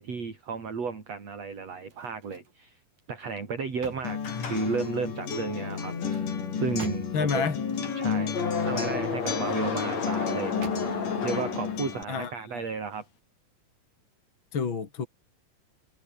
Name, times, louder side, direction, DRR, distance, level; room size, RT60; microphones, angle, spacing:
voice 1, 0.0-2.8 3.1-6.0 6.5-7.4 7.9-10.6 11.2-13.1, right 5 dB, 55° right, 5.2 m, -33 dB
sound 1, 1.8-2.6 3.0-4.9 5.7-7.4 9.2-10.0 10.6-11.2 11.7-11.9, right 5 dB, 80° right, 6.7 m, -47 dB
Acoustic guitar, 4.0-12.0, left 7 dB, 85° left, 5.0 m, -33 dB
sound 2, 4.2-12.3, left 5 dB, 60° left, 5.2 m, -33 dB
voice 2, 7.1-7.6 12.1-12.6 14.5-15.1, left 5 dB, 40° left, 3.0 m, -29 dB
omnidirectional pair, 3.6 m